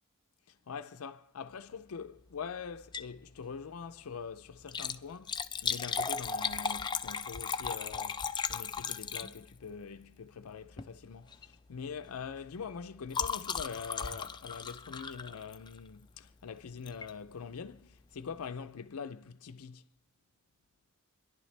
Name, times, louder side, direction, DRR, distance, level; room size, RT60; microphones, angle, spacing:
voice 1, 0.5-8.2 8.5-19.8, left 6 dB, 85° left, 0.5 m, -43 dB
Liquid, 2.8-3.2 3.5-3.6 4.6-9.7 10.7-11.0 11.3-11.5 11.8-15.9 16.9-17.1 17.7-17.8 17.9-18.0, left 6 dB, 20° left, 0.5 m, -36 dB
28.0 x 11.0 x 3.3 m
head